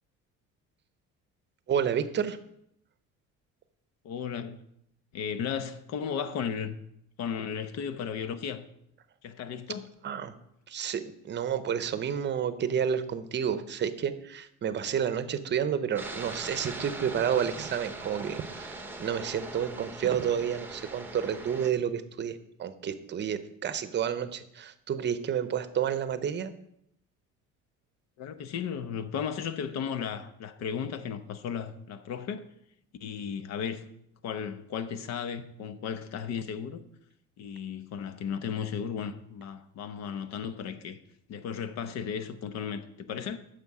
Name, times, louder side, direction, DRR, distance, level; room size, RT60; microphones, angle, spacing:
voice 1, 1.7-2.4 10.0-10.3 10.7-26.5, right 8 dB, 35° right, 0.7 m, -30 dB
voice 2, 4.0-4.6 5.1-6.8 7.2-8.7 9.2-10.0 28.2-32.5 33.0-33.9 34.2-36.9 37.4-41.0 41.3-43.4, left 7 dB, 60° left, 0.9 m, -35 dB
sound 1, 16.0-21.7, right 2 dB, 5° right, 0.9 m, -41 dB
9.5 x 6.7 x 4.8 m
cardioid pair, 120°, 30 cm